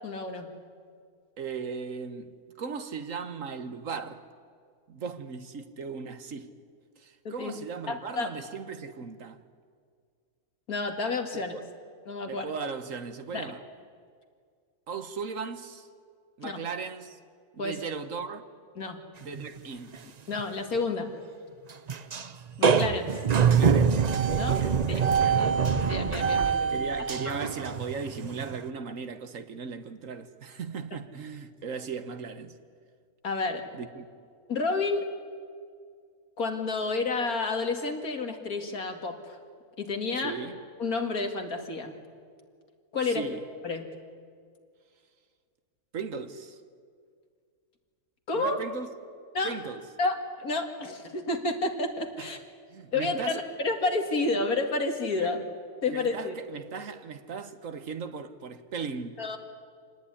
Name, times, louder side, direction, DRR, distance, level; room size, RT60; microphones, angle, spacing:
voice 1, 0.0-0.5 7.2-7.6 7.9-8.3 10.7-11.5 12.1-12.5 13.3-13.5 16.4-16.6 17.6-17.8 18.8-19.0 20.3-21.1 22.6-23.1 24.4-24.6 24.9-25.0 25.4-25.5 25.9-26.7 33.2-33.6 34.5-35.0 36.4-39.4 39.8-40.3 40.8-41.9 42.9-43.2 43.6-43.8 48.3-48.6 49.3-49.6 50.0-52.4 52.9-55.4 55.8-56.3 59.2-59.4, left 3 dB, 85° left, 2.7 m, -30 dB
voice 2, 1.4-4.3 4.9-6.5 7.0-9.4 11.3-11.6 12.3-13.6 14.9-15.9 16.4-17.2 17.5-18.4 19.2-20.0 23.1-23.2 23.5-25.9 26.7-32.6 33.7-34.1 40.2-40.6 43.0-43.4 45.9-46.6 48.3-48.9 49.4-49.9 52.2-52.3 52.7-53.4 55.2-55.3 55.9-59.4, right 5 dB, 65° right, 1.6 m, -37 dB
sound 1, 19.4-19.6 19.9-20.0 20.4-20.5 21.9-22.3 22.6-28.7, right 6 dB, 40° right, 0.6 m, -25 dB
27.0 x 19.0 x 9.9 m
omnidirectional pair, 1.5 m